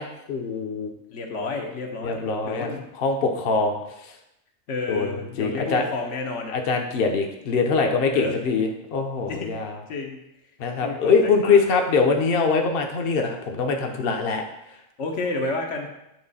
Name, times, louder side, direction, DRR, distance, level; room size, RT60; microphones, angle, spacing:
voice 1, 0.0-0.9 2.0-2.7 3.0-4.1 4.9-5.1 5.4-5.8 6.5-9.8 10.6-14.4, left 4 dB, 60° left, 3 dB, 0.9 m, -23 dB
voice 2, 1.1-2.8 4.7-6.6 8.1-8.4 9.3-9.6 9.9-10.2 10.8-11.1 11.4-11.6 15.0-15.9, left 2 dB, 80° left, 1 dB, 1.3 m, -30 dB
8.7 x 3.2 x 4.0 m, 0.85 s
omnidirectional pair, 1.2 m